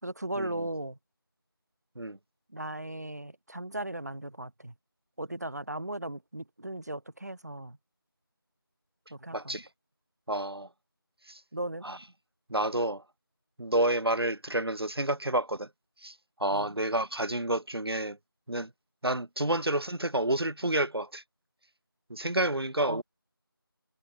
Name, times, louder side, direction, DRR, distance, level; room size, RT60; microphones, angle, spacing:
voice 1, 0.0-1.0 2.5-4.7 5.2-7.8 9.1-9.5 11.5-11.8 16.5-16.8 22.8-23.0, right 1 dB, 45° right, 2.8 m, -37 dB
voice 2, 9.3-9.7 10.3-10.7 11.3-11.4 11.8-12.0 12.5-13.0 13.6-15.7 16.0-16.1 16.4-18.2 18.5-18.7 19.0-21.2 22.1-23.0, right 1 dB, 90° right, 1.8 m, -29 dB
figure-of-eight pair, 175°, 12 cm